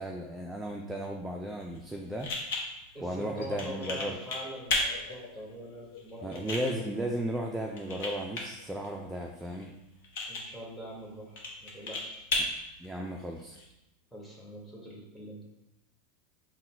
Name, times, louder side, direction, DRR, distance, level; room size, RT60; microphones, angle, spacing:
voice 1, 0.0-2.3 3.0-4.2 6.2-9.7 12.8-13.6, right 1 dB, 10° right, 0 dB, 0.4 m, -35 dB
sound 1, 1.6-13.6, left 2 dB, 70° left, 0.9 m, -37 dB
voice 2, 2.9-6.7 10.3-12.3 14.1-15.4, equal, 10° left, -4 dB, 1.3 m, -44 dB
sound 2, 3.4-8.7, left 6 dB, 85° left, 0.4 m, -51 dB
3.8 x 2.2 x 4.2 m, 0.92 s
hypercardioid pair, 105°, 0 cm